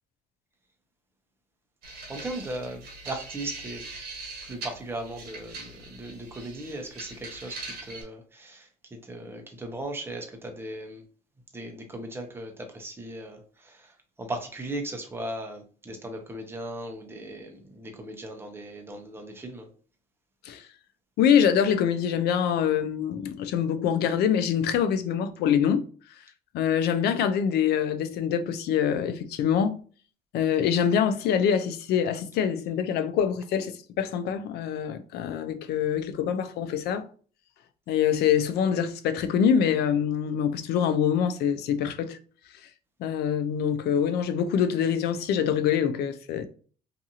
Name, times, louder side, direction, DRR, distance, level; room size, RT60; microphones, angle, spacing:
sound 1, 1.8-8.0, right 3 dB, 70° right, 1.2 m, -42 dB
voice 1, 2.1-3.8 4.4-11.0 11.5-19.7, right 1 dB, 15° right, 0.7 m, -38 dB
voice 2, 21.2-25.8 26.5-29.8 30.3-37.1 37.9-42.2 43.0-46.5, left 8 dB, 75° left, 0.4 m, -25 dB
2.6 x 2.4 x 2.7 m
cardioid pair, 110°, 17 cm